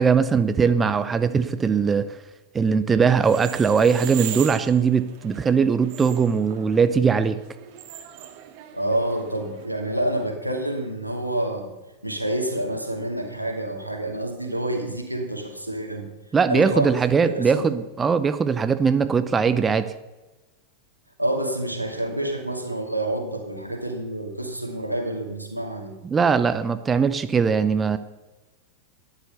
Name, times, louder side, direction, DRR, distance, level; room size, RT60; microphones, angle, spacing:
voice 1, 0.0-2.2 2.5-7.4 16.3-19.9 26.0-28.0, right 6 dB, 15° right, 11 dB, 0.7 m, -20 dB
sound 1, 3.2-9.7, right 11 dB, 45° right, 1.8 m, -39 dB
voice 2, 8.7-11.7 12.0-16.1 16.5-16.9 17.2-17.7 21.2-25.9, right 1 dB, 90° right, 2 dB, 2.4 m, -28 dB
12.5 x 10.5 x 6.8 m, 1.1 s
figure-of-eight pair, 90°, 0 cm